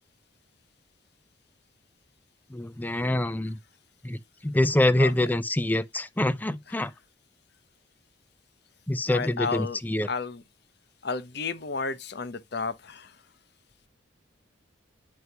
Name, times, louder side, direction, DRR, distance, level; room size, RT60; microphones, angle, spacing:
voice 1, 2.5-3.6 4.0-6.9 8.9-10.1, left 1 dB, 10° left, 0.4 m, -25 dB
voice 2, 9.1-9.8 10.1-10.4 11.0-13.1, left 4 dB, 55° left, 0.7 m, -32 dB
9.5 x 4.7 x 2.8 m
head